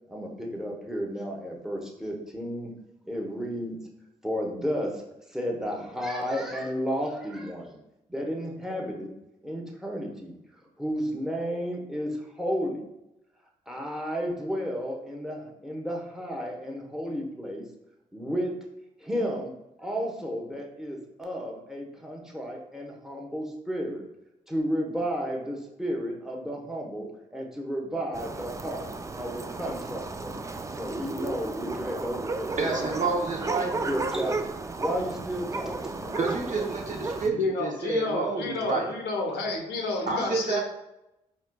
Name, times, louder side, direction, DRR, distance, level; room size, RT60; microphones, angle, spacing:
voice 1, 0.1-2.7 3.1-3.8 4.2-5.0 5.3-7.8 8.1-9.1 9.4-10.3 10.8-12.8 13.7-17.6 18.1-18.5 19.0-19.5 19.8-24.0 24.5-28.9 29.1-30.4 30.8-33.0 33.4-34.5 34.8-36.2, equal, 5° right, 0 dB, 1.0 m, -32 dB
sound 1, 28.1-37.3, right 3 dB, 20° right, 0.3 m, -34 dB
voice 2, 32.6-33.9 36.1-38.9 40.1-40.6, right 4 dB, 50° right, 0 dB, 0.8 m, -29 dB
voice 3, 37.2-40.6, left 3 dB, 75° left, 1 dB, 0.7 m, -30 dB
4.2 x 2.5 x 2.2 m, 0.88 s
hypercardioid pair, 45°, 17 cm